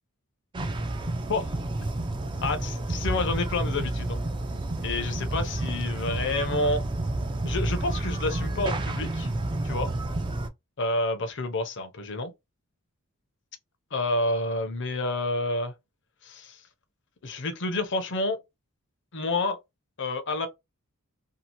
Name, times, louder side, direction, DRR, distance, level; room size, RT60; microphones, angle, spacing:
sound 1, 0.5-10.5, right 2 dB, 20° right, 0.3 m, -30 dB
voice 1, 2.4-4.2 4.8-6.8 7.4-9.3 9.6-9.9 10.8-12.3 13.9-15.7 16.2-16.6 17.2-18.4 19.1-19.6 20.0-20.5, left 2 dB, 55° left, 0.6 m, -29 dB
2.7 x 2.4 x 2.8 m
head